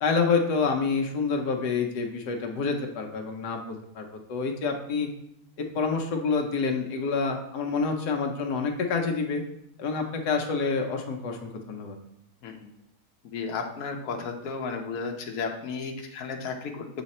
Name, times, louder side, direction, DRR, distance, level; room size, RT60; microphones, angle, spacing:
voice 1, 0.0-5.1 5.6-9.4 9.8-12.0, left 4 dB, 90° left, 2 dB, 1.4 m, -28 dB
voice 2, 13.2-16.9, left 4 dB, 65° left, 3 dB, 1.2 m, -33 dB
7.4 x 4.0 x 4.1 m, 0.78 s
omnidirectional pair, 1.7 m